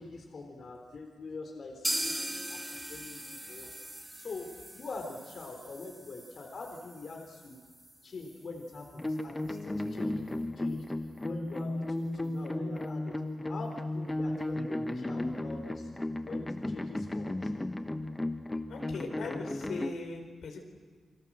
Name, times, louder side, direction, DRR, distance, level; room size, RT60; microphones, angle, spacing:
voice 1, 0.0-3.8 4.1-4.5 4.7-7.6 8.0-10.2 10.6-10.8 11.2-13.2 13.5-15.9 16.2-17.5, left 3 dB, 55° left, 2 dB, 3.7 m, -44 dB
sound 1, 1.8-9.6 9.9-10.0 10.3-10.4 10.8-10.9, right 1 dB, 5° right, 1.3 m, -41 dB
sound 2, 9.0-19.9, left 1 dB, 15° left, 1.0 m, -34 dB
voice 2, 18.7-20.6, left 3 dB, 75° left, 3 dB, 4.6 m, -39 dB
29.0 x 24.0 x 7.6 m, 1.5 s
wide cardioid pair, 140°, 0 cm